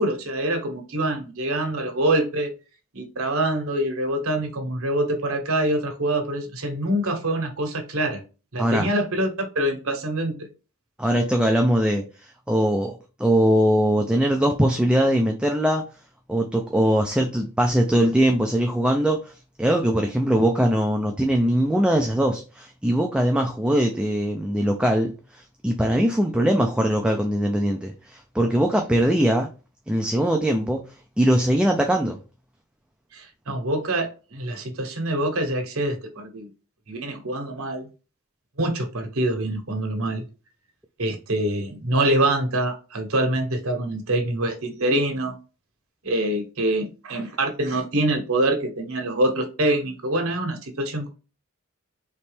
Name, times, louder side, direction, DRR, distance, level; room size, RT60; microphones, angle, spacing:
voice 1, 0.0-2.5 2.9-8.2 8.5-10.5 33.1-36.5 36.9-37.9 38.6-40.2 41.0-45.3 46.0-51.1, right 1 dB, 70° right, 4 dB, 1.3 m, -25 dB
voice 2, 8.6-8.9 11.0-15.8 16.3-29.5 29.9-30.8 31.2-32.2, equal, 5° right, 2 dB, 0.5 m, -21 dB
4.3 x 3.1 x 3.4 m, 0.33 s
head